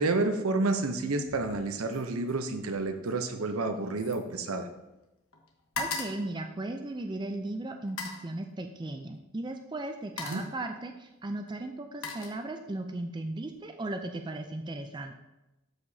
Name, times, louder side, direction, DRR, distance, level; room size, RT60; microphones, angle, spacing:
voice 1, 0.0-4.7 10.3-10.4, right 3 dB, 85° right, 7 dB, 0.7 m, -29 dB
sound 1, 1.2-1.6 1.9-5.0 5.3-7.2 7.8-8.3 9.3-9.5 9.9-10.6 11.5-12.9 13.2-13.6, left 3 dB, 80° left, 1.2 m, -41 dB
voice 2, 5.8-15.1, right 2 dB, 20° right, 5 dB, 0.4 m, -36 dB
12.5 x 4.9 x 2.7 m, 0.96 s
head